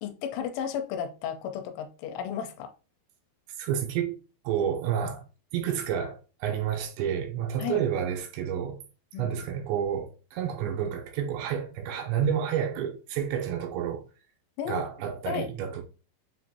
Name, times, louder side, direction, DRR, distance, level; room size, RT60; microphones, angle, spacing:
voice 1, 0.0-2.7 7.6-7.8 9.1-9.4 14.6-14.9 15.3-15.5, left 8 dB, 90° left, 3.0 m, -33 dB
voice 2, 3.6-4.2 4.4-5.2 5.5-8.8 9.2-14.1 14.7-15.8, right 9 dB, 80° right, 2.7 m, -30 dB
7.6 x 2.6 x 2.7 m
omnidirectional pair, 5.3 m